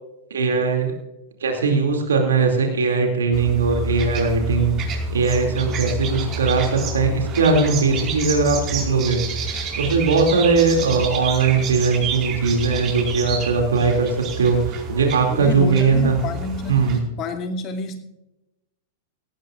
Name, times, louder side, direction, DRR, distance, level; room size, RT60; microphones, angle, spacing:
voice 1, 0.3-0.9 1.4-4.8 5.1-9.3 9.7-16.1 16.7-17.0, right 4 dB, 75° right, 3 dB, 2.6 m, -20 dB
sound 1, 3.3-17.0, right 3 dB, 35° right, 5.0 m, -29 dB
voice 2, 15.3-18.0, left 4 dB, 35° left, 5 dB, 2.4 m, -29 dB
18.0 x 17.5 x 2.5 m, 0.94 s
figure-of-eight pair, 100°, 0 cm